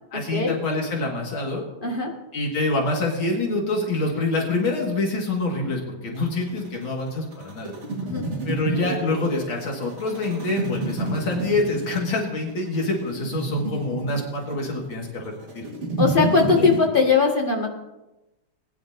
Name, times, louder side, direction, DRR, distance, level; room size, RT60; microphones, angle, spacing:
voice 1, 0.1-1.6 2.3-7.7 8.5-15.6 16.6-16.7, left 2 dB, 90° left, 0 dB, 2.7 m, -26 dB
sound 1, 6.1-16.8, right 2 dB, 35° right, 1.8 m, -30 dB
voice 2, 16.0-17.7, left 4 dB, 30° left, 0 dB, 1.6 m, -20 dB
20.5 x 10.0 x 2.6 m, 1.0 s
omnidirectional pair, 2.1 m